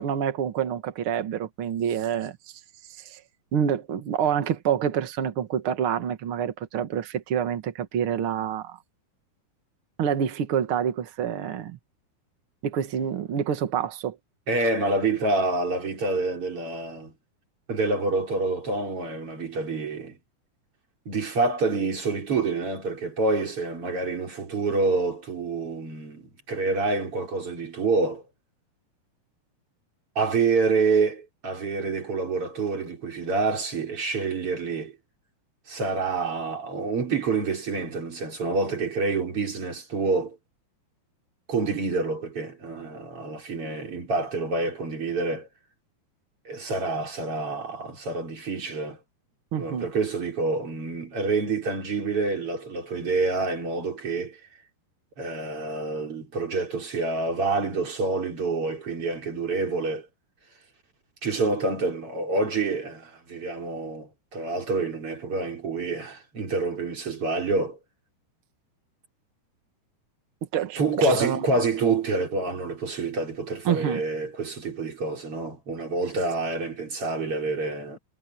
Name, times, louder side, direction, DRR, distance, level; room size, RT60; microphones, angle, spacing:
voice 1, 0.0-2.6 2.9-3.2 3.5-8.8 10.0-11.8 12.6-14.2 49.5-49.9 70.5-71.4 73.6-74.0, right 8 dB, 80° right, 1.2 m, -27 dB
voice 2, 14.5-17.1 17.7-20.2 21.1-28.2 30.2-35.0 35.7-40.4 41.5-45.5 46.5-49.0 49.5-54.4 55.2-60.1 61.2-67.8 70.8-78.0, right 3 dB, 35° right, 5.3 m, -27 dB
omnidirectional pair, 4.8 m